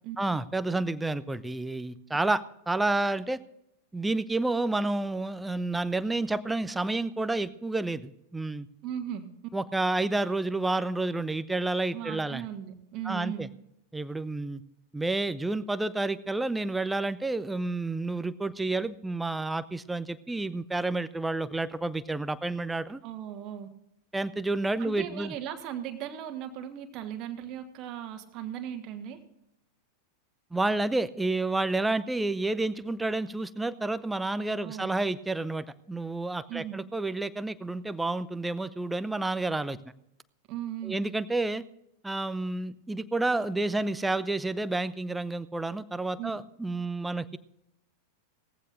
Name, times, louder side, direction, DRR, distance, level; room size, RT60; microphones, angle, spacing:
voice 1, 0.2-3.4 3.9-8.7 9.5-12.4 13.0-13.5 13.9-14.6 14.9-23.0 24.1-25.3 30.5-39.8 40.8-41.6 42.0-47.4, right 2 dB, 5° right, 15 dB, 0.6 m, -30 dB
voice 2, 8.8-9.3 11.9-13.5 23.0-23.7 24.8-29.2 34.6-34.9 36.5-36.8 40.5-41.0 46.2-46.3, right 10 dB, 40° right, 6 dB, 1.5 m, -37 dB
18.5 x 15.0 x 2.6 m, 0.82 s
figure-of-eight pair, 90°, 0 cm